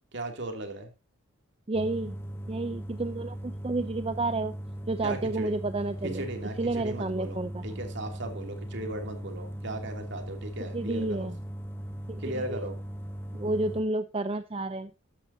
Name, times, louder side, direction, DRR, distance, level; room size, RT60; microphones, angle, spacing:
voice 1, 0.1-0.9 5.0-5.5 6.0-11.3 12.2-12.8, right 1 dB, 55° right, 5 dB, 2.8 m, -37 dB
sound 1, 1.7-13.8, equal, 10° left, 1.2 m, -39 dB
voice 2, 1.7-2.2 2.5-4.5 4.9-6.3 6.6-7.8 10.6-11.4 12.1-12.2 12.5-12.6 13.3-14.9, right 2 dB, 25° right, 11 dB, 0.5 m, -31 dB
13.5 x 11.5 x 2.8 m, 0.24 s
head